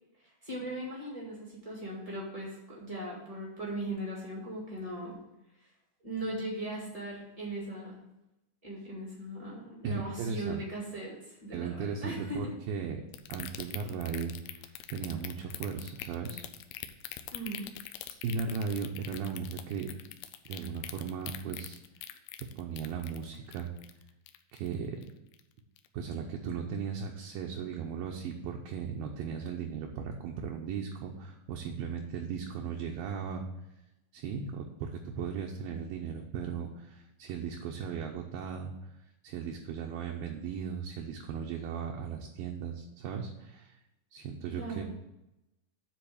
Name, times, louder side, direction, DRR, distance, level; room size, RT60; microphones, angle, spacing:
voice 1, 0.2-5.2 5.6-5.7 6.0-8.0 8.6-12.5 17.3-17.7 44.6-44.8, right 1 dB, 55° right, -4 dB, 0.4 m, -39 dB
voice 2, 9.8-10.6 11.5-13.0 13.3-14.6 14.9-16.4 18.2-20.0 20.5-21.8 22.6-23.7 24.5-25.0 25.9-33.5 34.1-38.9 39.2-43.8 44.1-44.8, right 6 dB, 80° right, 1 dB, 2.1 m, -37 dB
sound 1, 13.1-24.7 25.0-25.4 25.8-25.9, left 13 dB, 85° left, 2.7 m, -43 dB
9.8 x 4.0 x 7.0 m, 0.91 s
omnidirectional pair, 4.9 m